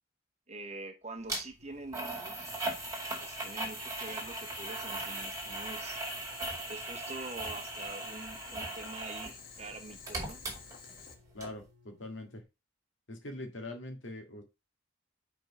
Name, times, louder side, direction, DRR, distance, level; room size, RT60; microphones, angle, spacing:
voice 1, 0.5-2.6 3.2-6.0 6.7-10.4, right 2 dB, 35° right, 0.9 m, -45 dB
sound 1, 1.3-1.4 1.9-9.4 9.7-11.1 11.4-11.5, right 2 dB, 15° right, 2.0 m, -38 dB
sound 2, 1.6-12.4, left 3 dB, 50° right, 1.1 m, -63 dB
Boiling, 2.4-11.1, left 5 dB, 45° left, 1.3 m, -51 dB
voice 2, 11.3-12.4 13.1-14.4, left 1 dB, 70° left, 1.9 m, -43 dB
5.2 x 4.5 x 5.4 m
head